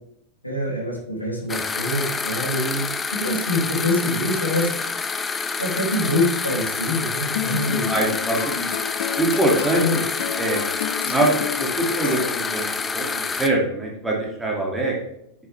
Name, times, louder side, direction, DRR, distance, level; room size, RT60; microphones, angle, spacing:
voice 1, 0.4-2.8 3.1-4.7 5.6-7.9 9.7-10.0, left 1 dB, 85° left, -3 dB, 2.9 m, -25 dB
sound 1, 1.5-13.5, left 5 dB, 15° left, 0.6 m, -27 dB
sound 2, 7.3-12.7, left 11 dB, 55° left, 0.4 m, -31 dB
voice 2, 7.9-8.7 9.2-9.8 10.4-10.6 11.0-12.6 12.9-15.0, right 2 dB, 5° right, -2 dB, 2.4 m, -23 dB
9.6 x 7.3 x 3.5 m, 0.76 s
figure-of-eight pair, 90°, 0 cm